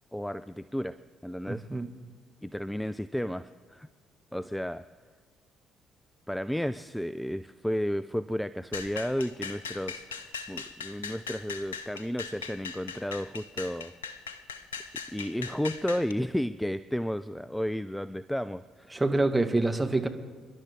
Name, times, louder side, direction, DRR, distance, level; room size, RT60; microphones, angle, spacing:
voice 1, 0.1-1.7 2.4-3.9 4.3-4.8 6.3-13.9 15.1-18.9, equal, 5° left, 15 dB, 0.5 m, -33 dB
voice 2, 1.5-1.9 18.9-20.1, right 2 dB, 15° right, 6 dB, 1.8 m, -26 dB
sound 1, 8.7-16.1, left 5 dB, 80° left, 0.6 m, -40 dB
28.5 x 11.5 x 3.7 m, 1.5 s
figure-of-eight pair, 45°, 0 cm